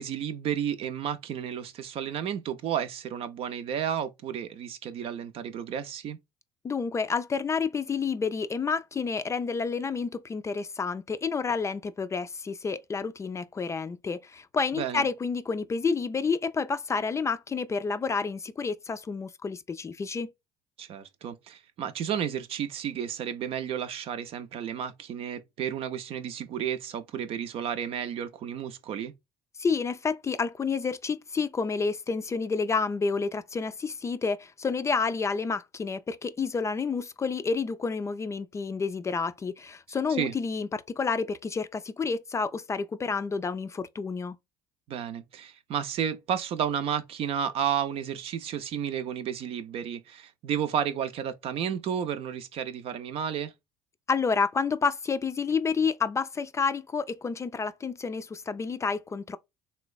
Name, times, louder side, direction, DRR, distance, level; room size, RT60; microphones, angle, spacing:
voice 1, 0.0-6.2 14.7-15.1 20.8-29.1 40.1-40.3 44.9-53.5, right 9 dB, 55° right, 0.6 m, -32 dB
voice 2, 6.6-20.3 29.6-44.4 54.1-59.4, left 5 dB, 25° left, 0.4 m, -29 dB
3.3 x 3.0 x 2.3 m
supercardioid pair, 75°, 11 cm